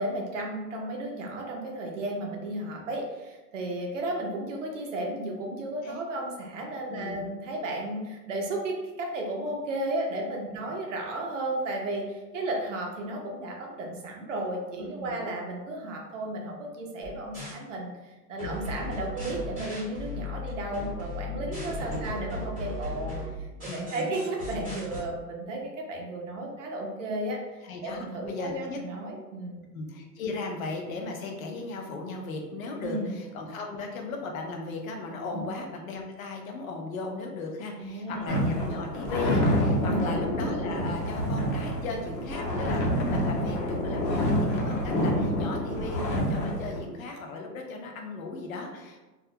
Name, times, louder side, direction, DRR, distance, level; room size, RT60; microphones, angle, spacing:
voice 1, 0.0-23.2 23.6-29.6 32.8-33.1 35.3-35.4 37.8-38.3 39.9-40.1, right 1 dB, 50° right, 0 dB, 0.5 m, -34 dB
voice 2, 6.9-7.2 14.8-15.2 18.4-18.6 21.4-22.1 23.7-24.2 27.6-28.8 29.7-49.0, left 3 dB, 55° left, 2 dB, 0.5 m, -37 dB
sound 1, 17.0-17.5 18.4-25.0, left 2 dB, 10° right, 0.6 m, -36 dB
sound 2, 38.3-46.8, equal, 85° left, 0.9 m, -27 dB
2.3 x 2.0 x 2.6 m, 1.1 s
hypercardioid pair, 175°, 50 cm